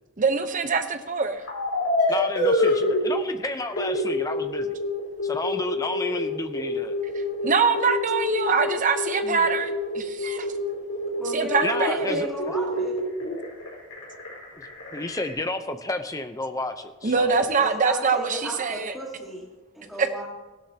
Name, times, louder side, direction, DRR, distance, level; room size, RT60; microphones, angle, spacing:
voice 1, 0.2-1.4 7.1-10.5 11.3-12.3 17.0-18.9 20.0-20.1, right 4 dB, 35° right, 8 dB, 0.8 m, -24 dB
sound 1, 1.5-3.2 3.6-15.3, left 2 dB, 70° left, 4.4 m, -27 dB
voice 2, 2.1-4.8 5.2-7.0 9.2-9.5 11.6-12.3 14.9-17.5, left 2 dB, 15° left, 8 dB, 0.7 m, -31 dB
voice 3, 11.2-12.9 17.6-19.4 19.7-20.2, right 1 dB, ahead, -6 dB, 1.7 m, -35 dB
16.5 x 12.5 x 2.9 m, 1.2 s
head